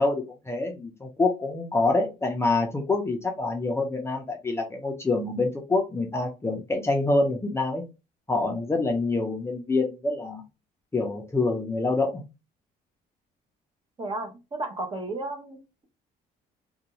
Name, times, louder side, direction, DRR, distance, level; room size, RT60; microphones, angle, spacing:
voice 1, 0.0-7.8 8.3-10.4 10.9-12.2, left 3 dB, 15° left, 0.6 m, -26 dB
voice 2, 14.0-15.8, right 2 dB, 30° right, 0.9 m, -34 dB
2.5 x 2.2 x 2.9 m
cardioid pair, 110°, 17 cm